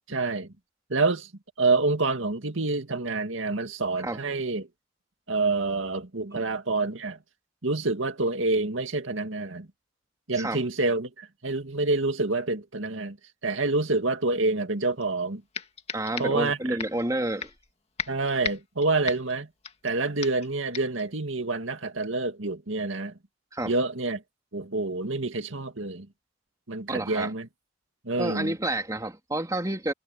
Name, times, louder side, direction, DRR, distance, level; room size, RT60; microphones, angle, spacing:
voice 1, 0.1-0.5 0.9-1.3 1.6-4.7 5.3-7.2 7.6-9.7 10.3-13.2 13.4-15.4 16.2-16.8 18.1-19.5 19.8-23.2 23.6-24.2 24.5-26.1 26.7-27.5 28.0-28.6, right 3 dB, 85° right, 2.1 m, -27 dB
sound 1, 15.0-15.1 15.5-16.5 16.8-17.0 17.4-17.7 18.0-19.9 20.2-20.5 20.7-21.0, left 5 dB, 30° left, 2.0 m, -36 dB
voice 2, 15.9-17.5 23.5-23.7 26.9-27.3 28.2-29.9, right 1 dB, 15° right, 3.2 m, -29 dB
head